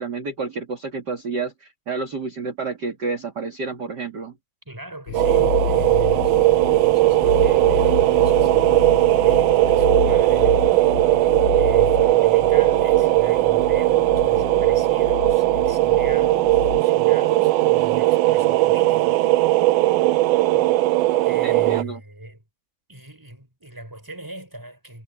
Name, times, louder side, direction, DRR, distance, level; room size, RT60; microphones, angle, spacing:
voice 1, 0.0-4.3 20.5-20.8 21.4-22.0, right 4 dB, 35° right, 2.7 m, -30 dB
voice 2, 4.6-11.0 11.5-19.3 21.2-22.4 22.9-25.0, right 1 dB, 5° right, 4.7 m, -39 dB
sound 1, 5.1-16.8, left 12 dB, 80° left, 2.0 m, -30 dB
sound 2, 5.1-21.8, right 18 dB, 90° right, 2.2 m, -18 dB
omnidirectional pair, 3.6 m